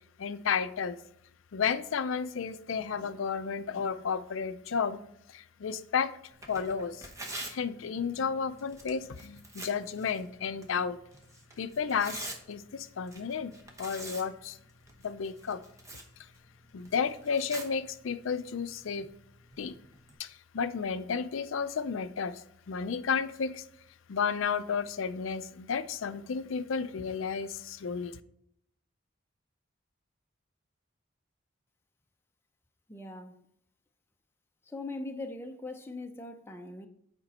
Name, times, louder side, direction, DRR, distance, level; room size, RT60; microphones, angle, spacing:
voice 1, 0.2-1.0 1.5-5.0 5.3-6.1 6.5-7.1 7.5-11.0 11.6-13.5 13.8-14.6 15.0-15.6 16.7-19.1 19.6-19.7 20.2-23.6 24.1-28.2, left 6 dB, 75° left, 0.4 m, -32 dB
Tearing, 6.3-20.1, right 1 dB, 15° right, 0.9 m, -47 dB
voice 2, 32.9-33.4 34.6-36.9, left 2 dB, 10° left, 0.6 m, -41 dB
8.8 x 5.1 x 4.2 m
head